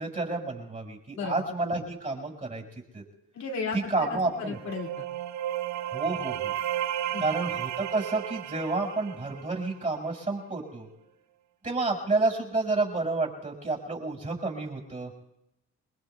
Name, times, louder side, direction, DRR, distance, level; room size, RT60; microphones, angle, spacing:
voice 1, 0.0-2.6 2.9-3.0 3.9-4.6 5.9-6.5 7.2-10.9 11.6-15.1, right 3 dB, 25° right, -1 dB, 5.9 m, -30 dB
voice 2, 3.3-5.1 7.1-7.3, left 4 dB, 65° left, -1 dB, 2.6 m, -35 dB
sound 1, 4.3-9.9, right 12 dB, 70° right, 0.5 m, -34 dB
29.5 x 21.5 x 2.3 m, 0.86 s
cardioid pair, 90°, 30 cm